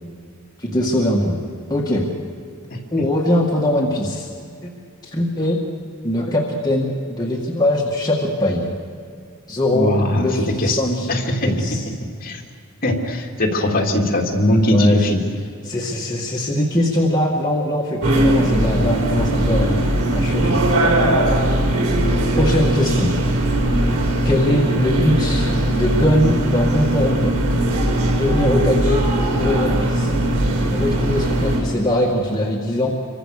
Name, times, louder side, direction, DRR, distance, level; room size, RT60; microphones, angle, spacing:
voice 1, 0.6-1.4 1.7-2.1 2.9-4.3 4.6-4.7 5.0-5.6 6.0-8.8 9.5-11.8 14.7-15.0 15.6-20.7 21.0-21.2 22.4-23.2 24.2-25.5 25.8-27.4 28.2-29.1 29.4-30.1 30.7-32.9, left 1 dB, 20° left, -2 dB, 2.0 m, -21 dB
voice 2, 9.7-10.3 10.6-10.8 11.1-11.7 12.2-12.4 12.8-15.2, left 1 dB, 45° left, 1 dB, 3.1 m, -19 dB
sound 1, 18.0-31.6, right 1 dB, 90° right, 5.0 m, -19 dB
27.0 x 24.0 x 6.8 m, 2.3 s
head